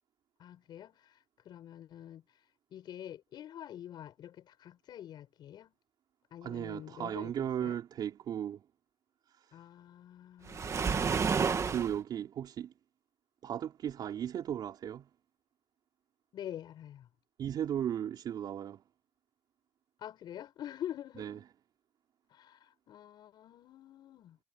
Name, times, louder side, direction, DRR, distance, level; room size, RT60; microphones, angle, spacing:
voice 1, 0.4-2.2 2.7-5.7 6.3-7.8 9.5-11.0 16.3-17.1 20.0-21.5 22.3-24.4, left 11 dB, 85° left, 7.3 m, -46 dB
voice 2, 6.4-8.6 9.3-9.6 11.7-12.7 13.4-15.1 17.4-18.8 21.2-21.4, right 9 dB, 75° right, 4.6 m, -36 dB
Waves surf, 10.5-12.0, right 5 dB, 45° right, 2.0 m, -30 dB
cardioid pair, 115°, 7 cm